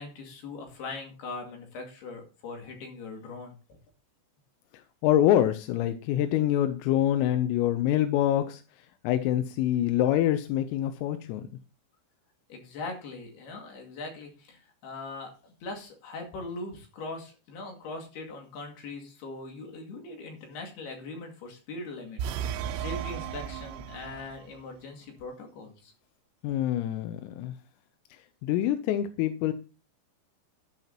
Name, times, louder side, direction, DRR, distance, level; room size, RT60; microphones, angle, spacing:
voice 1, 0.0-3.6 12.5-25.9, left 3 dB, 60° left, 2 dB, 3.7 m, -41 dB
voice 2, 4.7-8.6 9.0-11.5 26.4-27.5 28.4-29.5, left 12 dB, 85° left, 10 dB, 3.3 m, -25 dB
sound 1, 22.2-24.5, right 9 dB, 85° right, 3.6 m, -34 dB
12.5 x 11.5 x 2.9 m, 0.34 s
omnidirectional pair, 5.9 m